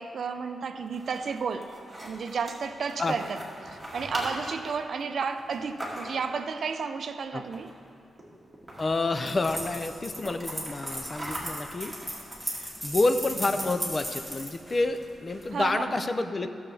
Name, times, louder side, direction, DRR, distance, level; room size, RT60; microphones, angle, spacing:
voice 1, 0.0-1.7 2.0-7.7 15.5-16.1, right 5 dB, 65° right, 8 dB, 0.5 m, -32 dB
sound 1, 0.8-6.4 7.4-7.9 8.2-8.3 8.5-9.6 10.0-12.7, right 1 dB, 10° right, 2.0 m, -41 dB
voice 2, 8.8-11.9 12.5-16.5, left 2 dB, 30° left, 9 dB, 0.5 m, -29 dB
sound 2, 9.3-15.5, equal, 10° left, 2.2 m, -36 dB
15.0 x 7.0 x 3.4 m, 2.5 s
wide cardioid pair, 120°, 0 cm